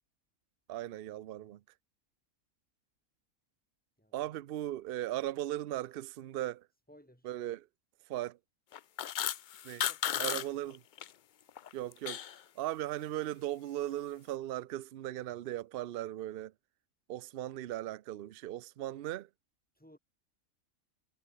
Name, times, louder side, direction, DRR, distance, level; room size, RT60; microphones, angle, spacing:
voice 1, 0.7-1.6 4.1-6.7 7.2-7.7 8.1-8.4 9.6-9.9 10.2-10.8 11.7-12.3 12.6-16.5 17.1-19.3, right 14 dB, 60° right, 0.6 m, -38 dB
voice 2, 4.0-4.3 6.9-7.3 9.7-10.6 19.7-20.0, equal, 5° left, 7.0 m, -59 dB
sound 1, 8.7-10.5 10.7-11.1 11.5-12.4, left 10 dB, 80° left, 0.4 m, -34 dB
omnidirectional pair, 1.5 m